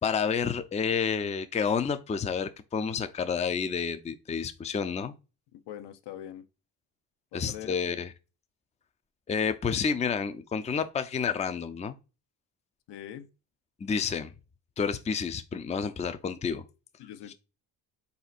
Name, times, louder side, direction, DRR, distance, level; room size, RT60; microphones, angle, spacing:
voice 1, 0.0-5.1 7.3-8.1 9.3-12.0 13.8-14.3 14.8-16.6 17.3-17.4, left 6 dB, 15° left, 0.4 m, -29 dB
voice 2, 5.5-6.4 7.3-7.8 12.9-13.3 17.0-17.3, left 11 dB, 70° left, 0.8 m, -42 dB
4.2 x 2.7 x 4.0 m
supercardioid pair, 60°, 44 cm